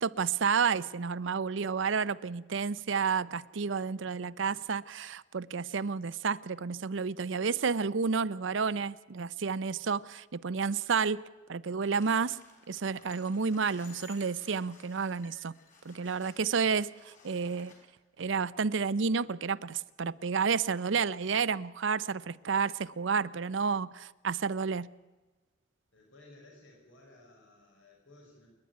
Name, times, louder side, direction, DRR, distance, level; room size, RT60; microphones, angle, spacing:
voice 1, 0.0-11.2 11.5-12.4 12.7-15.5 15.8-17.7 18.2-24.9, right 5 dB, 70° right, 0.6 m, -30 dB
sound 1, 11.8-17.8, left 4 dB, 40° left, 5.2 m, -57 dB
voice 2, 25.9-28.5, left 2 dB, 75° left, 5.2 m, -57 dB
28.5 x 11.0 x 9.3 m
head